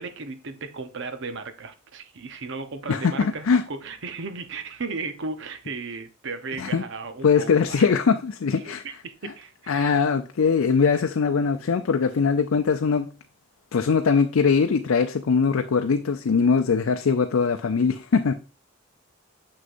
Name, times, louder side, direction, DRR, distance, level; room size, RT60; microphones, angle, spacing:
voice 1, 0.0-7.9 8.6-10.0, right 4 dB, 65° right, 0.8 m, -35 dB
voice 2, 2.9-3.6 6.6-6.8 7.2-8.8 9.7-13.1 13.7-18.3, left 5 dB, 80° left, 0.5 m, -21 dB
6.4 x 6.4 x 2.6 m
head